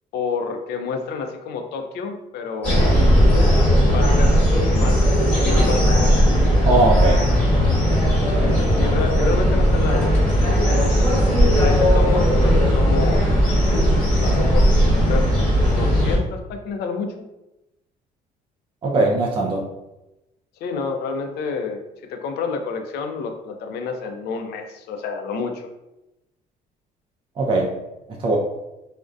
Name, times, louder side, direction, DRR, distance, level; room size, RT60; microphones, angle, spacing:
voice 1, 0.1-6.1 8.4-10.2 10.4-11.1 11.6-13.4 14.2-15.3 15.7-17.1 20.6-25.6, left 4 dB, 70° left, 5 dB, 0.4 m, -29 dB
sound 1, 2.6-16.2, equal, 10° left, 1.1 m, -17 dB
voice 2, 6.7-7.2 18.8-19.7 27.4-27.7 28.2-28.4, right 2 dB, 30° right, -1 dB, 0.4 m, -20 dB
2.5 x 2.1 x 2.3 m, 0.95 s
cardioid pair, 110°, 17 cm